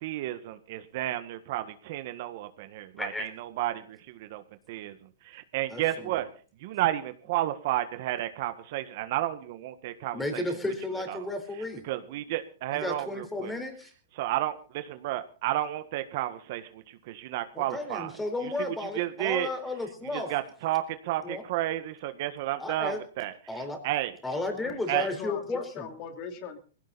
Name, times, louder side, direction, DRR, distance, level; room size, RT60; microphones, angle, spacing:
voice 1, 0.0-4.4 4.7-4.9 5.2-6.3 6.6-10.4 11.1-11.2 11.8-13.5 14.2-18.1 18.6-19.5 20.1-23.3 23.8-24.1 24.9-25.1, right 14 dB, 50° right, 10 dB, 1.6 m, -32 dB
voice 2, 3.0-3.3 5.7-6.2 10.1-11.8 12.7-13.9 17.5-20.3 21.2-21.4 22.6-23.0 23.5-23.8 24.2-25.9, left 2 dB, 5° left, 6 dB, 4.1 m, -33 dB
voice 3, 24.5-26.6, left 7 dB, 40° left, 6 dB, 3.1 m, -40 dB
19.5 x 16.5 x 4.2 m, 0.40 s
hypercardioid pair, 145°, 0 cm